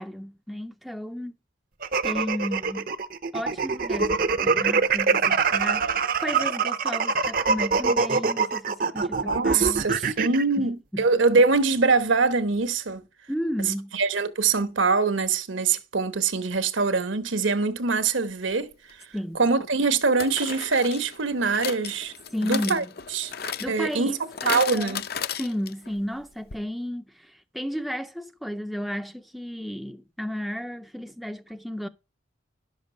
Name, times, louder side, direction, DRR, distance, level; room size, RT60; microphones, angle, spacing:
voice 1, 0.0-1.3 2.0-2.9 3.3-10.2 10.6-11.1 13.3-14.0 19.1-19.4 22.3-22.9 23.6-25.0 25.4-31.9, equal, ahead, 0.4 m, -33 dB
sound 1, 1.8-10.4, right 4 dB, 45° right, 0.6 m, -24 dB
voice 2, 9.2-13.0 13.9-18.7 19.4-22.1 22.4-22.8 23.1-23.3 23.7-24.1 24.4-25.0, right 4 dB, 75° right, 1.1 m, -23 dB
sound 2, 18.9-19.0 20.2-25.9 26.2-26.3 26.5-26.6, left 8 dB, 50° left, 0.6 m, -35 dB
11.5 x 6.6 x 5.2 m
head